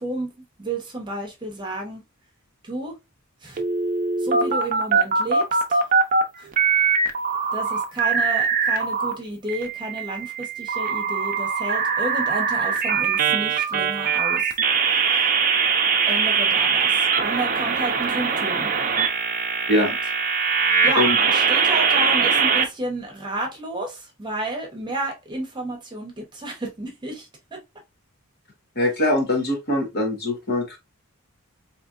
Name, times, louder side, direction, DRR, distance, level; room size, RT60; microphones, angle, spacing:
voice 1, 0.0-2.0 2.6-3.0 3.4-3.6 4.2-6.0 6.4-6.9 7.5-14.5 14.9-15.3 16.1-18.7 19.7-20.0 20.8-27.6, right 1 dB, 20° right, 1.0 m, -31 dB
sound 1, 3.6-6.2 6.5-9.1 9.5-22.6, right 5 dB, 40° right, 0.6 m, -22 dB
voice 2, 28.7-30.8, left 1 dB, 50° left, 1.4 m, -22 dB
4.2 x 3.0 x 2.5 m
head